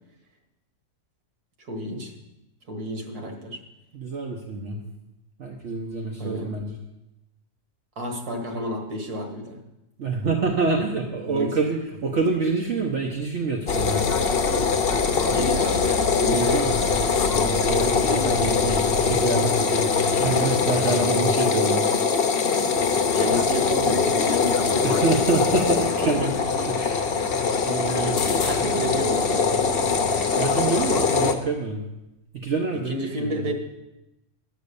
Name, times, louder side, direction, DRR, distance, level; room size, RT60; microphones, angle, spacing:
voice 1, 1.6-2.1 2.7-3.6 6.2-6.5 8.0-9.6 11.2-11.5 15.3-16.9 20.8-21.1 22.3-22.5 23.1-25.0 26.0-26.5 27.9-29.6 32.9-33.5, equal, 90° right, 3 dB, 2.1 m, -30 dB
voice 2, 3.9-4.8 5.4-6.8 10.0-14.1 16.3-16.8 17.4-19.9 20.2-21.9 24.8-27.1 27.6-28.1 30.4-31.8 32.3-32.9 33.2-33.5, right 3 dB, 55° right, 1 dB, 1.2 m, -27 dB
sound 1, 13.7-31.3, left 5 dB, 50° left, 0.8 m, -22 dB
10.5 x 6.5 x 6.8 m, 0.95 s
omnidirectional pair, 1.6 m